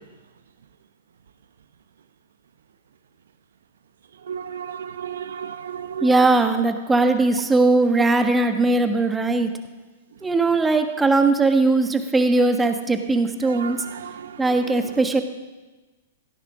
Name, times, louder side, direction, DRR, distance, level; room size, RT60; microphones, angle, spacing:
voice 1, 4.3-6.1 13.5-14.1, right 8 dB, 70° right, 11 dB, 0.8 m, -33 dB
voice 2, 6.0-9.5 10.2-13.8 14.4-15.2, right 3 dB, 10° right, 6 dB, 1.4 m, -19 dB
17.0 x 15.5 x 3.7 m, 1.2 s
hypercardioid pair, 110°, 0 cm